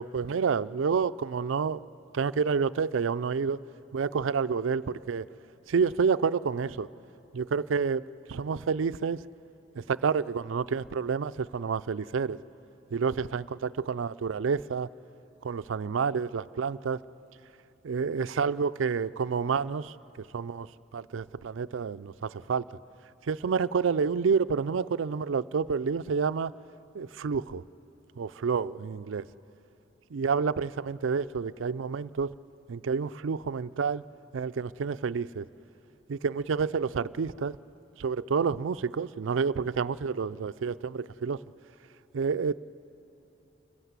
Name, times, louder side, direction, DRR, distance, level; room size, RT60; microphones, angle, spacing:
voice 1, 0.0-1.8 2.1-3.6 3.9-5.3 5.7-6.9 7.3-8.0 8.3-9.2 9.8-12.4 12.9-14.9 15.4-17.0 17.8-20.7 20.9-22.6 23.3-26.5 26.9-27.6 28.2-29.3 30.1-32.3 32.7-34.0 34.3-35.5 36.1-37.6 38.0-41.4 42.1-42.5, right 5 dB, 85° right, 15 dB, 0.4 m, -29 dB
29.0 x 15.0 x 8.2 m, 2.9 s
head